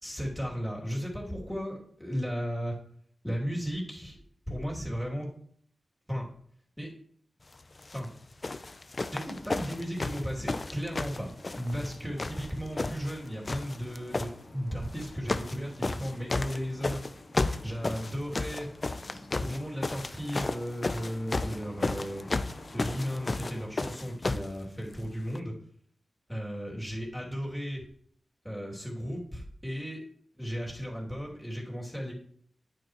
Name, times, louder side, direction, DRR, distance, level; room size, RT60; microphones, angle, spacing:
voice 1, 0.0-2.8 3.2-4.2 4.5-5.3 6.1-6.3 6.8-6.9 7.9-8.1 9.1-17.0 17.6-18.7 19.4-22.3 22.7-25.5 26.3-27.8 28.4-30.0 30.3-32.1, equal, 5° left, -3 dB, 2.7 m, -35 dB
sound 1, 7.8-8.0 8.4-11.9 12.2-13.2 13.4-14.3 14.9-15.6 15.8-24.5 25.3-25.4, left 3 dB, 40° left, 0.5 m, -33 dB
sound 2, 9.1-23.7, left 2 dB, 65° left, 1.9 m, -52 dB
9.3 x 8.9 x 3.1 m, 0.64 s
wide cardioid pair, 70°, 0 cm